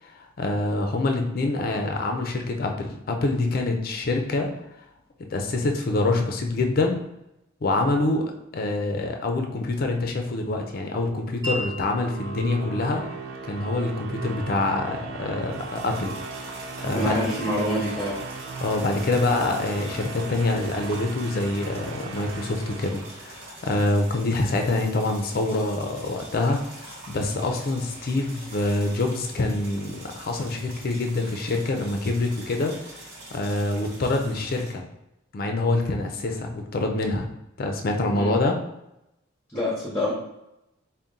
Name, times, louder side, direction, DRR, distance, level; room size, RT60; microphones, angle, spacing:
voice 1, 0.0-4.5 5.3-7.0 7.6-8.3 8.5-13.0 13.5-16.1 16.8-17.1 18.6-34.8 35.3-37.3 37.6-38.6, left 2 dB, 45° left, 3 dB, 0.5 m, -26 dB
sound 1, 10.6-23.7, right 4 dB, 75° right, 0.4 m, -37 dB
Wind chime, 11.4-19.1, equal, 15° right, 0.7 m, -42 dB
sound 2, 15.4-34.7, right 2 dB, 50° right, 1.3 m, -44 dB
voice 2, 16.9-18.2 38.1-38.3 39.5-40.1, left 1 dB, 15° left, -6 dB, 0.7 m, -26 dB
4.0 x 2.1 x 3.7 m, 0.88 s
head